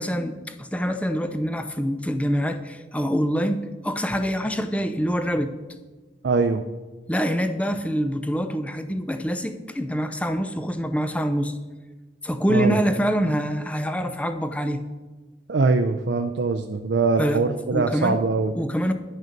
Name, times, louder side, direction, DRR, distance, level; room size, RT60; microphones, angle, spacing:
voice 1, 0.0-5.5 7.1-11.6 12.2-14.8 17.2-17.4 17.7-18.2 18.5-18.9, equal, 5° left, 9 dB, 0.5 m, -25 dB
voice 2, 6.2-6.6 12.5-12.8 15.5-18.6, right 4 dB, 65° right, 6 dB, 0.5 m, -22 dB
10.5 x 6.5 x 5.2 m, 1.3 s
head